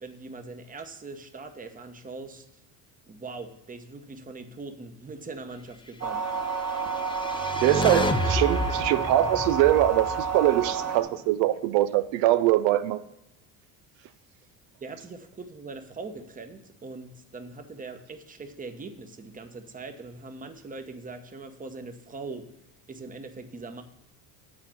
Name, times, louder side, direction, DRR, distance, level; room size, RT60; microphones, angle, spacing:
voice 1, 0.0-2.6 3.1-6.2 14.8-22.5 22.9-23.8, right 3 dB, 20° right, 0.9 m, -41 dB
sound 1, 6.0-11.0, right 5 dB, 35° right, 2.1 m, -30 dB
sound 2, 6.7-11.0, left 1 dB, 10° left, 0.6 m, -30 dB
voice 2, 7.6-13.0, right 14 dB, 80° right, 0.6 m, -23 dB
8.5 x 4.4 x 7.2 m
cardioid pair, 105°, 43 cm